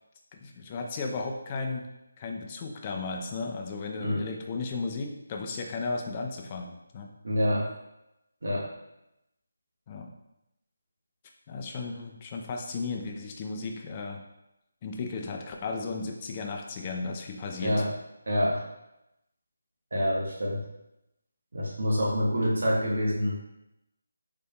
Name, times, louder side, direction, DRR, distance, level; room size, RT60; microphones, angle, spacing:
voice 1, 0.4-1.8 2.2-7.1 9.9-10.1 11.5-14.2 14.8-17.8, left 4 dB, 25° left, 3 dB, 0.4 m, -35 dB
voice 2, 7.2-7.7 8.4-8.7 17.6-17.9 18.3-18.7 19.9-20.6 21.5-23.4, equal, 65° right, -3 dB, 1.1 m, -26 dB
4.0 x 3.3 x 2.3 m, 0.88 s
figure-of-eight pair, 160°, 0 cm